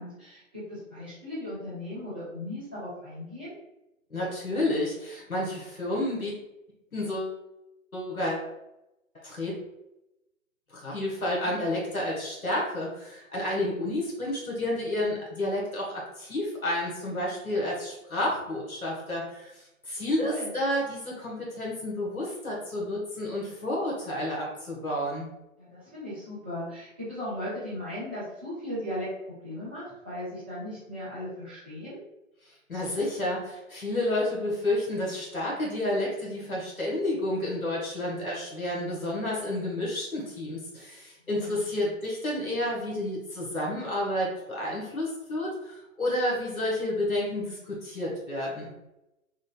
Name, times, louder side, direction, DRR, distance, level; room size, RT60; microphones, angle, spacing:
voice 1, 0.0-3.5 11.2-11.6 20.2-20.5 25.6-29.1 29.4-32.0 41.2-41.6, left 1 dB, 10° right, -9 dB, 0.4 m, -37 dB
voice 2, 4.1-6.3 6.9-7.4 7.9-8.5 9.2-9.5 10.7-25.3 32.4-48.7, left 1 dB, 90° left, -4 dB, 1.4 m, -30 dB
5.5 x 2.5 x 2.2 m, 0.93 s
figure-of-eight pair, 125°, 41 cm